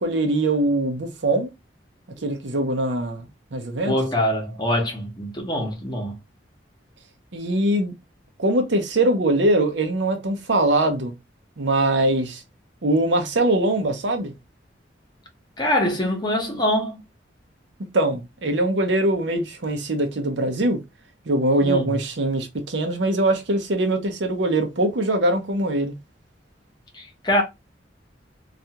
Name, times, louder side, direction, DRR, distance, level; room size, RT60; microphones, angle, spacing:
voice 1, 0.0-1.5 2.2-3.9 7.3-7.9 8.4-11.1 11.6-12.4 12.8-14.3 17.9-20.8 21.3-25.9, right 1 dB, 75° right, 0.7 m, -22 dB
voice 2, 3.8-6.2 15.6-17.0 21.6-22.0 26.9-27.4, left 1 dB, 25° left, 0.8 m, -24 dB
2.4 x 2.3 x 2.8 m
head